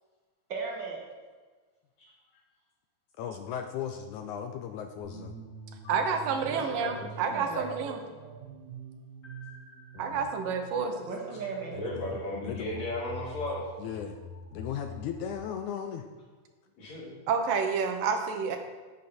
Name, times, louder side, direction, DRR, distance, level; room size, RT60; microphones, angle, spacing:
voice 1, 0.5-1.0 6.4-8.5 11.0-11.8, right 3 dB, 45° right, -2 dB, 1.8 m, -37 dB
voice 2, 3.2-5.3 9.9-10.3 11.7-12.2 12.4-12.7 13.8-14.2 14.5-16.0, left 8 dB, 80° left, 6 dB, 1.9 m, -37 dB
sound 1, 5.0-15.3, right 1 dB, 25° left, 2.3 m, -45 dB
voice 3, 5.9-8.0 10.0-11.1 17.3-18.6, right 5 dB, 80° right, 5 dB, 2.7 m, -29 dB
voice 4, 11.7-13.6 16.8-17.1, left 1 dB, 55° left, -12 dB, 4.1 m, -35 dB
10.5 x 9.4 x 4.3 m, 1.4 s
omnidirectional pair, 3.9 m